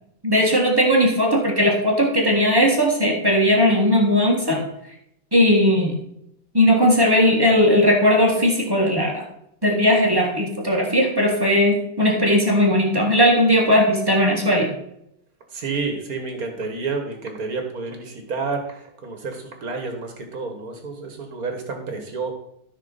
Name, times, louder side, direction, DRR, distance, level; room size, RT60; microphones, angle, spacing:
voice 1, 0.2-4.6 5.3-6.0 6.5-9.2 9.6-14.7, equal, 15° right, 0 dB, 1.6 m, -18 dB
voice 2, 15.5-22.3, right 4 dB, 50° right, 4 dB, 1.9 m, -30 dB
13.0 x 6.0 x 4.1 m, 0.75 s
omnidirectional pair, 2.1 m